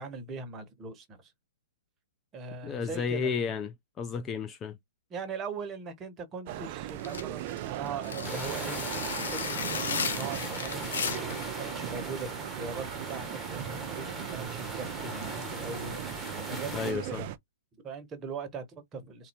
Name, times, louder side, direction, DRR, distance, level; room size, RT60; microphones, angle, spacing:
voice 1, 0.0-1.3 2.3-3.4 5.1-8.8 9.2-12.3 12.5-17.3 17.8-19.3, right 4 dB, 20° right, 1.4 m, -40 dB
voice 2, 2.6-3.7 4.0-4.8 16.7-17.2, left 6 dB, 20° left, 0.5 m, -32 dB
sound 1, 6.5-17.4, right 13 dB, 40° right, 0.6 m, -38 dB
sound 2, 7.0-11.5, left 6 dB, 70° left, 1.1 m, -35 dB
sound 3, 8.2-16.9, equal, ahead, 1.6 m, -40 dB
4.2 x 2.7 x 4.3 m
hypercardioid pair, 140°, 0 cm